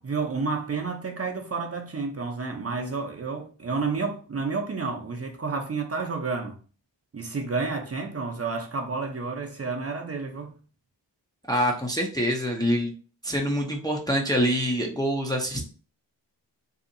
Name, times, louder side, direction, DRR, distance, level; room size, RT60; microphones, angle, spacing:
voice 1, 0.0-6.6 7.1-10.6, right 4 dB, 35° right, 0.6 m, -30 dB
voice 2, 11.5-12.9 13.2-15.6, equal, 10° left, 0.5 m, -25 dB
2.8 x 2.5 x 2.6 m
cardioid pair, 55°, 44 cm